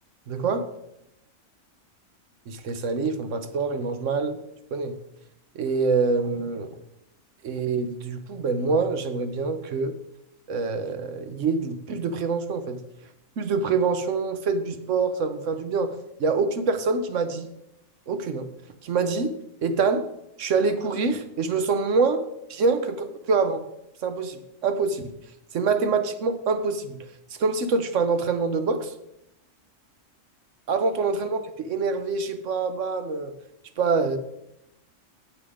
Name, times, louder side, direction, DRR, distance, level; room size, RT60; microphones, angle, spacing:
voice 1, 0.3-0.7 2.5-4.4 4.7-5.0 5.5-6.7 7.4-9.9 10.5-12.8 13.4-17.5 18.1-18.5 18.8-19.3 19.6-20.1 20.4-22.2 22.5-23.6 24.0-25.1 25.5-27.0 27.4-28.9 30.7-33.3 33.8-34.2, right 4 dB, 70° right, 9 dB, 1.2 m, -25 dB
7.9 x 7.5 x 4.9 m, 0.84 s
omnidirectional pair, 1.3 m